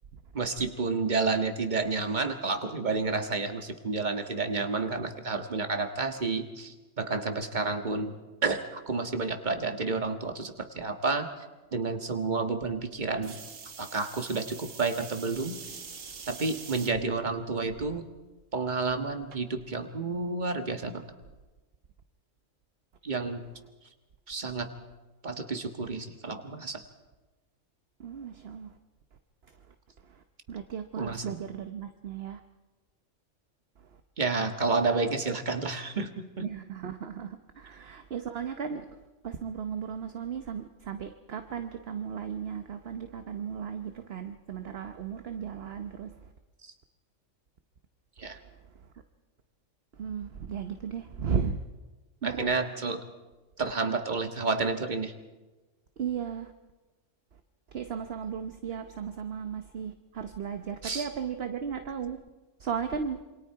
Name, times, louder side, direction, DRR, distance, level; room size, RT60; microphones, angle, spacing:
voice 1, 0.3-8.1 8.4-11.3 11.7-13.4 13.8-15.6 16.3-18.0 18.5-21.0 23.0-23.4 24.3-24.7 25.2-26.8 31.0-31.4 34.2-36.5 46.6-46.7 48.2-48.4 52.2-53.0 53.6-55.1 60.8-61.1, right 3 dB, 35° right, 7 dB, 1.6 m, -30 dB
sound 1, 13.2-16.9 17.6-18.0 19.3-19.4, right 5 dB, 75° right, 1.8 m, -44 dB
voice 2, 28.0-28.8 29.5-29.6 30.0-32.4 33.8-33.9 36.4-46.3 48.4-48.9 50.0-51.6 52.2-52.5 56.0-56.5 57.7-62.2 62.6-63.2, right 7 dB, 55° right, 8 dB, 1.1 m, -36 dB
27.5 x 24.5 x 4.7 m, 1.2 s
omnidirectional pair, 1.3 m